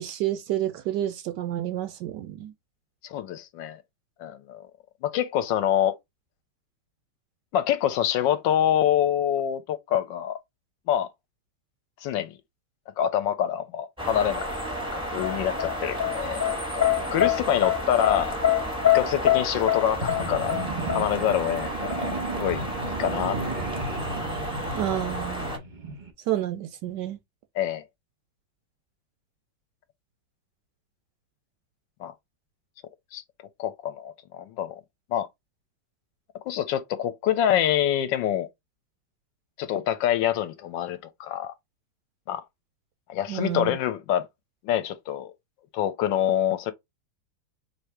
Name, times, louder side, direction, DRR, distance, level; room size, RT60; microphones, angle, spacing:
voice 1, 0.0-2.5 24.7-25.5 26.3-27.2 43.3-43.8, right 12 dB, 75° right, 1.1 m, -29 dB
voice 2, 3.0-3.8 4.2-4.7 5.0-6.0 7.5-10.4 10.9-11.1 12.0-12.4 13.0-14.5 14.9-16.5 16.7-18.4 18.9-20.5 20.9-23.4 27.6-27.8 32.0-32.1 33.1-33.2 33.6-34.8 35.1-35.3 36.5-38.5 39.6-41.5 42.3-42.4 43.1-44.3 44.6-45.3 45.7-46.7, left 10 dB, 80° left, 1.2 m, -26 dB
sound 1, 14.0-25.6, right 1 dB, 5° right, 0.6 m, -32 dB
sound 2, 15.2-21.1, left 12 dB, 45° left, 0.6 m, -24 dB
sound 3, 19.9-26.1, right 3 dB, 40° right, 0.7 m, -34 dB
3.3 x 2.7 x 4.5 m
omnidirectional pair, 2.1 m